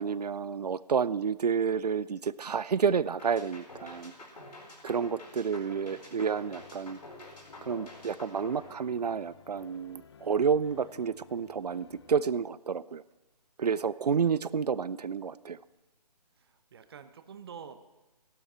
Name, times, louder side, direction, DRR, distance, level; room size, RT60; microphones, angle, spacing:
voice 1, 0.0-4.1 4.8-7.0 7.6-13.0 13.6-15.6, right 6 dB, 70° right, 19 dB, 0.5 m, -30 dB
sound 1, 3.2-9.4, left 2 dB, 70° left, 4.4 m, -49 dB
sound 2, 5.7-12.3, left 5 dB, 40° left, 0.6 m, -55 dB
voice 2, 16.3-17.8, right 7 dB, 35° right, 11 dB, 0.8 m, -47 dB
14.5 x 12.0 x 4.4 m, 1.1 s
figure-of-eight pair, 145°, 21 cm